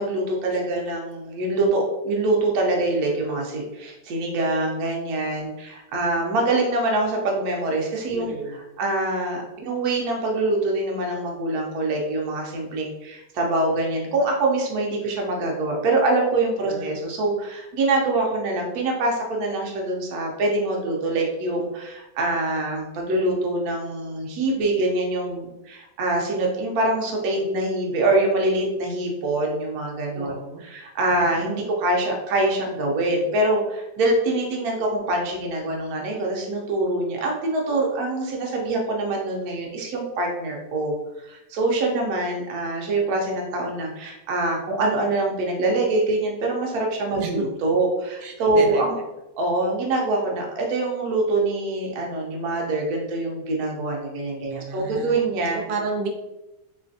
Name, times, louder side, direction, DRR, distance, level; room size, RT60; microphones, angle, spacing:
voice 1, 0.0-30.3 30.6-49.0 49.4-55.6, right 2 dB, 70° right, 0 dB, 1.2 m, -24 dB
voice 2, 8.1-8.6 16.6-17.0 30.2-30.6 31.1-31.7 47.2-47.5 48.2-48.8 54.5-55.1 55.7-56.1, right 4 dB, 90° right, 1 dB, 1.2 m, -31 dB
3.2 x 3.1 x 2.6 m, 0.96 s
omnidirectional pair, 1.8 m